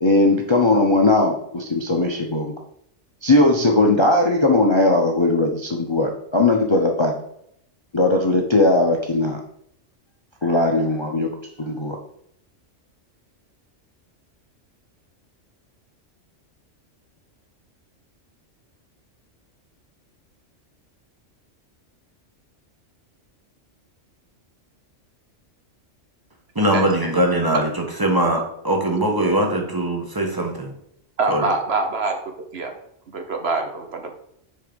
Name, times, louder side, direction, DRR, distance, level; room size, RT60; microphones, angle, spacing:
voice 1, 0.0-2.5 3.2-7.1 7.9-9.4 10.4-11.3 11.6-12.0, left 2 dB, 30° left, 2 dB, 0.6 m, -18 dB
voice 2, 26.5-27.7 28.0-30.7 31.3-31.5, right 1 dB, 20° right, 2 dB, 1.3 m, -21 dB
voice 3, 31.2-32.7 33.1-34.1, right 3 dB, 60° right, 4 dB, 1.1 m, -25 dB
6.6 x 4.4 x 5.2 m, 0.72 s
omnidirectional pair, 1.3 m